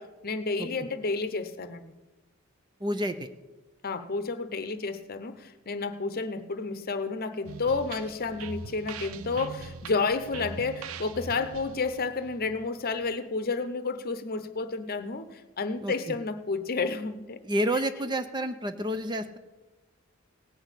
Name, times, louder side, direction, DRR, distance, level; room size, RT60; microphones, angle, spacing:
voice 1, 0.0-1.9 3.8-17.4, left 4 dB, 45° left, 10 dB, 0.8 m, -31 dB
voice 2, 2.8-3.3 15.8-16.2 17.4-19.4, right 1 dB, 20° right, 10 dB, 0.5 m, -29 dB
sound 1, 7.4-13.1, right 5 dB, 65° right, 0.5 m, -42 dB
17.5 x 6.2 x 8.2 m, 1.2 s
head